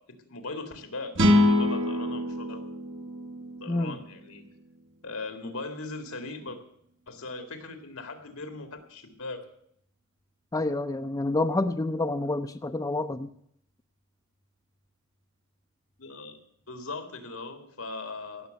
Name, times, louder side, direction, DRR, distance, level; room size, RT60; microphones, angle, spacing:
voice 1, 0.0-2.6 3.6-4.5 5.0-6.6 7.1-9.4 16.0-16.4 16.7-18.5, left 3 dB, 75° left, 6 dB, 2.0 m, -39 dB
sound 1, 1.1-4.5, left 1 dB, 60° right, 1.5 m, -25 dB
voice 2, 10.5-13.3, left 2 dB, 15° left, 8 dB, 0.5 m, -28 dB
17.0 x 6.7 x 8.0 m, 0.71 s
head